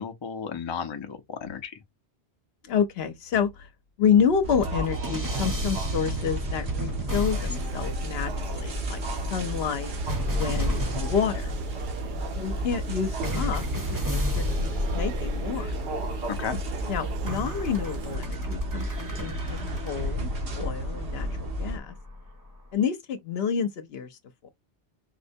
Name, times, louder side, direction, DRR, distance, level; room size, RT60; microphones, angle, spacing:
voice 1, 0.0-1.8 16.3-16.6, left 7 dB, 35° left, 0.4 m, -34 dB
voice 2, 2.6-3.7 4.0-9.0 9.3-9.9 10.3-11.5 12.3-15.8 16.9-22.0 22.7-24.5, left 7 dB, 70° left, 0.9 m, -29 dB
sound 1, 4.4-21.8, right 1 dB, 75° right, 1.2 m, -32 dB
sound 2, 4.6-8.9 10.1-12.0 13.2-16.1 17.3-22.3, left 1 dB, 20° right, 0.7 m, -33 dB
sound 3, 7.5-18.2, right 8 dB, 60° right, 0.6 m, -43 dB
4.3 x 2.1 x 2.6 m
omnidirectional pair, 1.1 m